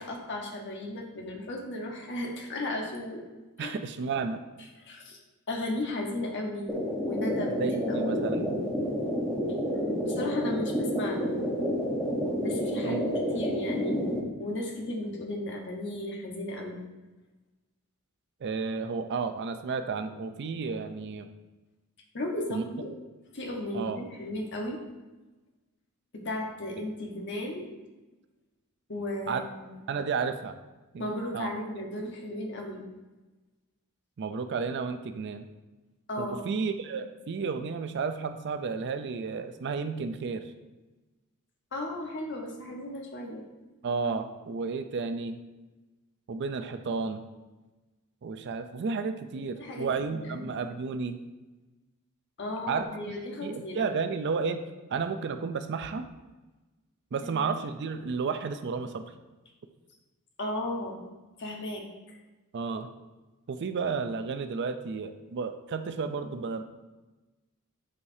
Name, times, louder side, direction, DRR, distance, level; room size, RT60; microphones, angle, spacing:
voice 1, 0.0-3.3 3.6-3.7 4.8-5.2 5.5-6.8 7.0-8.1 10.0-11.4 12.4-13.0 13.3-14.0 14.4-16.8 22.1-22.9 23.3-24.8 26.1-27.7 28.9-29.8 31.0-32.8 36.1-36.4 41.7-43.5 49.6-50.5 52.4-53.9 57.2-57.4 60.4-61.0 61.4-62.2, left 1 dB, 55° left, 1 dB, 1.1 m, -35 dB
voice 2, 3.6-4.4 7.6-8.5 12.8-13.1 18.4-21.3 22.5-22.6 23.7-24.0 29.3-29.4 29.9-30.6 30.9-31.1 31.3-31.5 34.2-35.5 36.2-40.5 43.8-45.4 46.3-47.2 48.2-51.2 52.7-53.1 53.4-54.6 54.9-56.0 57.1-59.0 62.5-62.9 63.5-66.6, right 5 dB, 50° right, 9 dB, 0.4 m, -32 dB
sound 1, 6.7-14.2, equal, 5° left, 1.0 m, -29 dB
8.3 x 4.8 x 2.7 m, 1.1 s
head